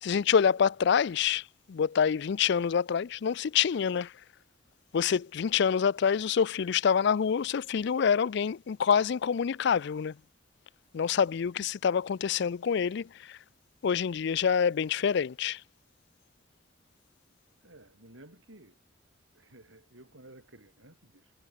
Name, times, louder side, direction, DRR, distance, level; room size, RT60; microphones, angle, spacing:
voice 1, 0.0-4.1 4.9-10.2 10.9-13.4 13.8-15.6, left 7 dB, 65° left, 0.4 m, -26 dB
voice 2, 17.6-18.8 19.3-21.3, right 1 dB, 85° right, 7.9 m, -54 dB
head